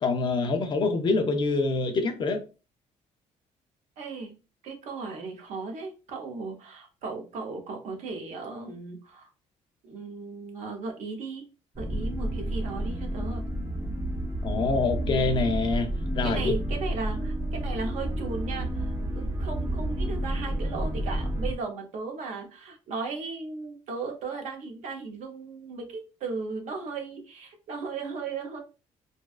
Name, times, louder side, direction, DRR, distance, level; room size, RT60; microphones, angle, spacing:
voice 1, 0.0-2.4 14.4-15.9 16.1-16.5, left 3 dB, 40° left, 0.4 m, -25 dB
voice 2, 4.0-4.3 4.6-9.3 9.8-11.4 11.8-13.4 16.2-28.6, right 4 dB, 70° right, 0.7 m, -36 dB
sound 1, 11.7-21.5, right 1 dB, 20° right, 0.5 m, -30 dB
2.6 x 2.3 x 2.3 m
cardioid pair, 140°, 13 cm